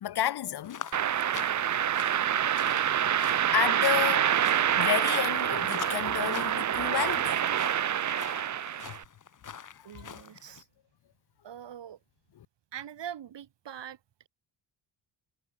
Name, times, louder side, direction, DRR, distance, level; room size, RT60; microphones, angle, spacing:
voice 1, 0.0-1.1 3.5-7.8 8.7-9.0 9.7-10.2 12.3-12.5, left 11 dB, 60° left, 1.1 m, -32 dB
sound 1, 0.6-10.6, left 7 dB, 45° left, 2.0 m, -45 dB
sound 2, 0.9-9.0, right 10 dB, 40° right, 0.7 m, -27 dB
voice 2, 9.8-10.7 11.4-12.0 12.7-14.0, right 9 dB, 70° right, 5.9 m, -42 dB
cardioid pair, 95°, 44 cm